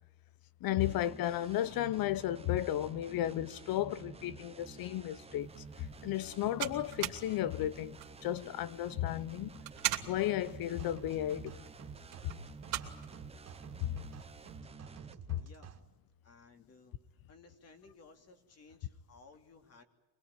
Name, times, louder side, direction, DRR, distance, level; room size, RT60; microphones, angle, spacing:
voice 1, 0.6-5.5 6.0-9.5 10.1-11.6 12.2-12.3 13.8-13.9 15.3-15.4, left 13 dB, 50° left, 1.0 m, -33 dB
sound 1, 0.8-15.1, right 5 dB, 15° right, 0.8 m, -51 dB
sound 2, 5.4-14.6, right 15 dB, 65° right, 2.9 m, -43 dB
sound 3, 10.5-15.8, right 7 dB, 35° right, 2.6 m, -51 dB
voice 2, 15.4-15.7 16.2-17.0 17.3-19.8, left 4 dB, 35° left, 3.0 m, -58 dB
25.0 x 21.0 x 9.0 m
cardioid pair, 145°, 44 cm